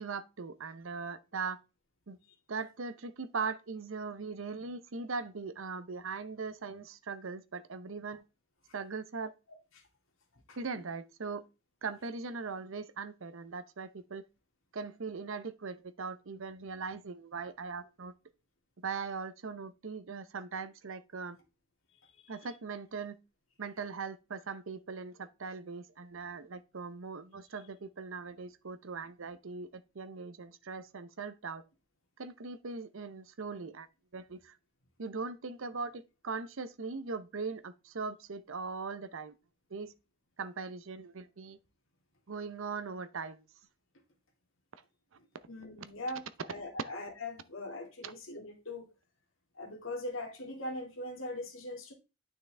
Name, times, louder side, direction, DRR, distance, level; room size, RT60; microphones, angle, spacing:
voice 1, 0.0-1.6 2.1-2.2 2.5-8.2 8.7-9.3 10.6-11.4 11.8-14.2 14.7-18.1 18.8-21.4 22.3-23.2 23.6-31.6 32.2-33.9 34.1-34.6 35.0-39.4 39.7-39.9 40.4-41.6 42.3-43.4 48.0-48.1, right 4 dB, 75° right, 0.7 m, -40 dB
voice 2, 22.0-22.4 45.5-48.9 49.5-51.9, left 1 dB, 80° left, 2.2 m, -41 dB
9.6 x 5.7 x 3.3 m
head